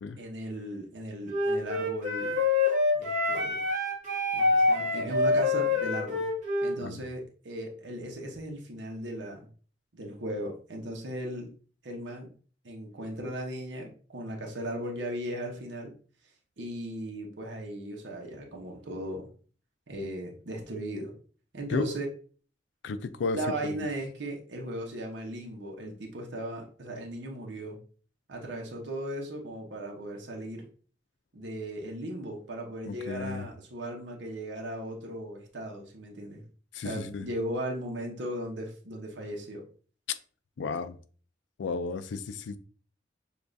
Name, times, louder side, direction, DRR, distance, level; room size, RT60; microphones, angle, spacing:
voice 1, 0.2-2.4 2.9-3.6 4.3-6.2 6.6-9.5 9.9-11.5 11.8-12.3 12.6-15.9 16.6-19.3 19.9-21.1 21.5-22.1 23.3-27.8 28.3-30.7 31.3-36.4 36.8-39.6, right 1 dB, 80° right, 0.9 m, -37 dB
Wind instrument woodwind instrument, 1.3-6.8, left 3 dB, 40° right, 1.3 m, -26 dB
voice 2, 22.8-23.8 32.9-33.5 36.7-37.3 40.6-41.0 41.6-42.6, left 4 dB, 80° left, 0.4 m, -33 dB
6.8 x 2.4 x 2.6 m
head